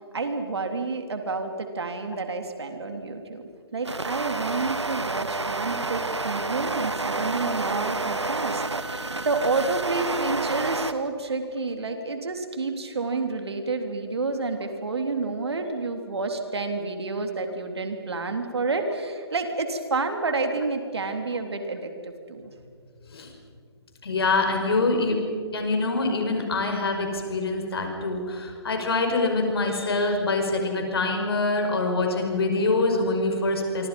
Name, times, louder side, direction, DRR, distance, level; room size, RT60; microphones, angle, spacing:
voice 1, 0.1-3.4 3.7-22.5, right 3 dB, 70° right, 5 dB, 3.5 m, -29 dB
sound 1, 3.8-10.9, right 3 dB, 90° right, 1.4 m, -29 dB
voice 2, 24.0-25.2 25.5-33.9, left 3 dB, 60° left, 3 dB, 5.6 m, -25 dB
29.0 x 24.5 x 5.5 m, 2.1 s
figure-of-eight pair, 140°, 14 cm